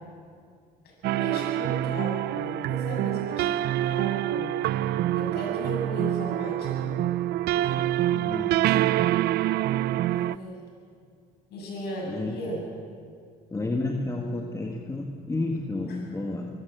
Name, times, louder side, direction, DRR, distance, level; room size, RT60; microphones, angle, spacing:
sound 1, 1.0-10.4, right 13 dB, 70° right, 0.4 m, -26 dB
voice 1, 1.1-4.5 5.1-6.9 7.5-7.9 10.0-10.6 11.5-12.6, equal, 75° left, -1 dB, 7.5 m, -36 dB
voice 2, 8.1-8.8 12.0-12.4 13.5-16.5, left 2 dB, 20° left, 1 dB, 1.6 m, -31 dB
24.0 x 14.0 x 7.8 m, 2.2 s
cardioid pair, 110°, 17 cm